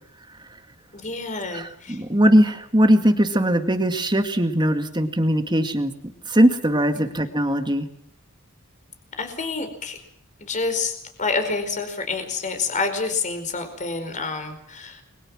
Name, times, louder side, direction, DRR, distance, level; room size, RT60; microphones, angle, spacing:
voice 1, 0.9-2.0 6.9-7.2 9.2-10.0 10.4-15.0, left 4 dB, 35° left, 7 dB, 4.8 m, -28 dB
voice 2, 1.5-5.9 6.3-7.8, equal, 20° right, 7 dB, 2.1 m, -20 dB
30.0 x 22.5 x 6.3 m, 0.65 s
head